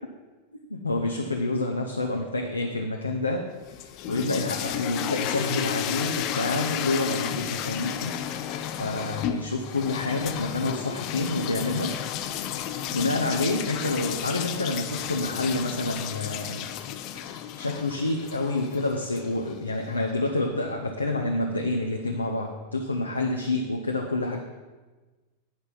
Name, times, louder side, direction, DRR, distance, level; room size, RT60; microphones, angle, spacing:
voice 1, 0.7-3.5 3.8-8.5 8.8-11.9 12.6-16.7 17.3-24.4, left 2 dB, 80° left, 1 dB, 0.7 m, -28 dB
sound 1, 3.6-19.6, left 10 dB, 40° left, 0.5 m, -33 dB
8.7 x 5.4 x 5.9 m, 1.3 s
figure-of-eight pair, 90°, 0 cm